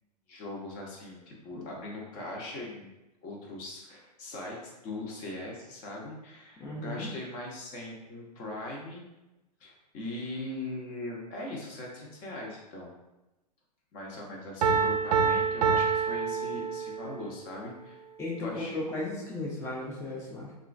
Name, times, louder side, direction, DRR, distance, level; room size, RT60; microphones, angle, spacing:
voice 1, 0.3-3.0 3.2-9.0 9.6-12.9 13.9-18.0 18.4-18.8, left 2 dB, 40° left, -2 dB, 0.8 m, -40 dB
voice 2, 6.6-7.1 18.2-20.5, left 2 dB, 15° left, -5 dB, 0.5 m, -35 dB
Piano, 14.6-17.2, right 6 dB, 70° right, 0.4 m, -26 dB
2.9 x 2.4 x 2.5 m, 1.0 s
hypercardioid pair, 110°, 21 cm